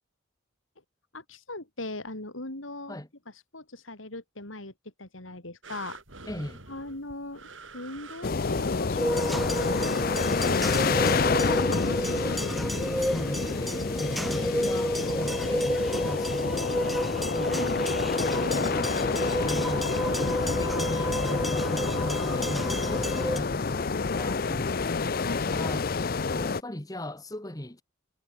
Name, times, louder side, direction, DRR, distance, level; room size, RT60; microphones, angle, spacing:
voice 1, 1.1-3.0 3.5-4.7 5.0-6.0 6.7-12.4 17.3-18.0 23.9-24.7 25.2-25.8, left 2 dB, 85° left, 4.7 m, -40 dB
sound 1, 5.6-9.6 10.2-10.3, right 3 dB, 80° right, 7.7 m, -47 dB
voice 2, 6.2-6.6 12.9-17.6 18.0-25.2 25.4-25.9 26.4-27.8, left 1 dB, 20° left, 1.5 m, -38 dB
sound 2, 8.2-26.6, left 4 dB, 50° left, 0.6 m, -28 dB
sound 3, 9.0-23.4, equal, ahead, 0.9 m, -30 dB
head